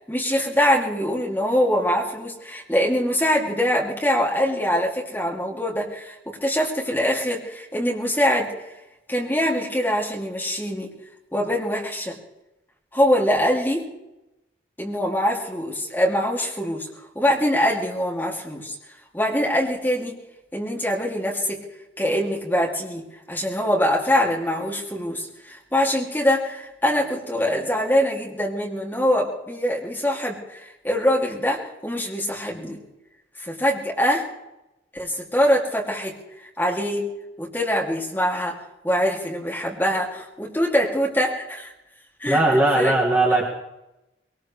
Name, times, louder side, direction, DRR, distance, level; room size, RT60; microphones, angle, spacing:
voice 1, 0.1-8.5 9.1-10.9 11.3-12.2 12.9-13.9 14.8-16.9 17.1-18.7 19.1-20.2 20.5-21.6 22.0-32.8 33.4-34.3 34.9-36.2 36.6-37.0 37.4-38.6 38.8-41.7 42.2-42.4 42.7-42.9, equal, 10° left, -2 dB, 2.8 m, -23 dB
voice 2, 42.3-43.5, right 2 dB, 10° right, -4 dB, 2.1 m, -19 dB
22.0 x 19.0 x 3.4 m, 0.93 s
head